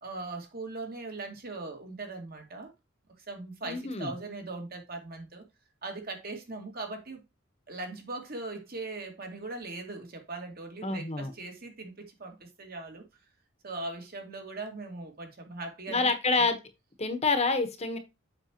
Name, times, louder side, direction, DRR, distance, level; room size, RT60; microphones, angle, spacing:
voice 1, 0.0-2.7 3.2-5.4 5.8-7.2 7.7-13.0 13.6-16.5, right 3 dB, 50° right, 2.2 m, -40 dB
voice 2, 3.6-4.1 10.8-11.3 15.9-16.6 17.0-18.0, left 3 dB, 35° left, 1.1 m, -27 dB
7.7 x 6.1 x 2.9 m
head